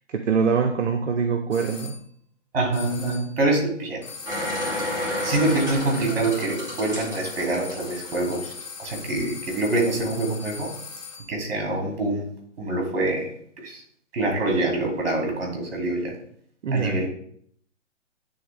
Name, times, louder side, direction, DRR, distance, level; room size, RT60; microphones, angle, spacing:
voice 1, 0.1-1.9 16.6-17.0, right 5 dB, 70° right, 6 dB, 0.7 m, -23 dB
sound 1, 1.5-2.0 2.7-3.4 4.0-11.4, left 5 dB, 85° left, 1.8 m, -39 dB
voice 2, 2.5-4.1 5.2-8.5 8.8-10.7 11.3-12.2 12.6-13.3 13.6-13.8 14.1-16.2 16.7-17.1, right 2 dB, 50° right, 0 dB, 2.6 m, -25 dB
sound 2, 4.3-8.6 9.0-9.1, left 1 dB, 10° right, 2.5 m, -31 dB
9.2 x 3.6 x 3.3 m, 0.64 s
figure-of-eight pair, 140°, 37 cm